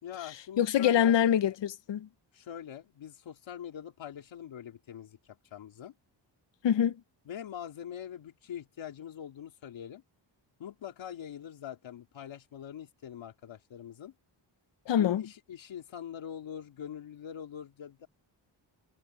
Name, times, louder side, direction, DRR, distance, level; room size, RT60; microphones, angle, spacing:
voice 1, 0.0-1.2 2.3-5.9 7.3-10.0 10.6-14.1 15.0-18.1, left 9 dB, 90° left, 2.6 m, -43 dB
voice 2, 0.6-2.1 6.6-7.0 14.9-15.2, left 10 dB, 70° left, 0.9 m, -25 dB
wide cardioid pair, 180°, 45 cm